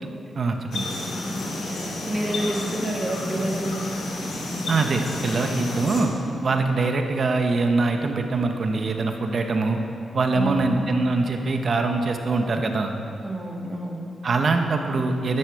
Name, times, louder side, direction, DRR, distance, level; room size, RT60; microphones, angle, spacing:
voice 1, 0.3-0.9 4.7-6.1 6.4-9.8 10.1-12.9 14.2-15.4, right 3 dB, 50° right, 4 dB, 1.3 m, -23 dB
sound 1, 0.7-6.0, left 2 dB, 70° left, 3.1 m, -30 dB
voice 2, 1.7-4.0 10.3-10.8 13.2-14.1, right 1 dB, 20° right, 0 dB, 2.0 m, -29 dB
12.5 x 10.5 x 6.5 m, 2.7 s
cardioid pair, 90°, 0 cm